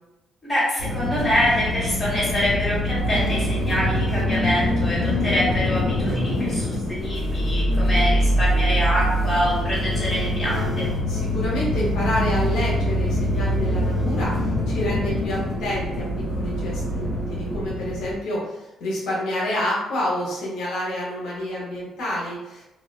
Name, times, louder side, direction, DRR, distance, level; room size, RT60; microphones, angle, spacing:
voice 1, 0.4-10.9, equal, 20° left, -7 dB, 1.3 m, -25 dB
sound 1, 0.8-18.1, left 1 dB, 60° left, 1.1 m, -24 dB
voice 2, 11.1-16.1 16.3-22.6, left 1 dB, 85° left, -5 dB, 0.7 m, -28 dB
2.4 x 2.2 x 2.3 m, 1.0 s
cardioid pair, 90°, 0 cm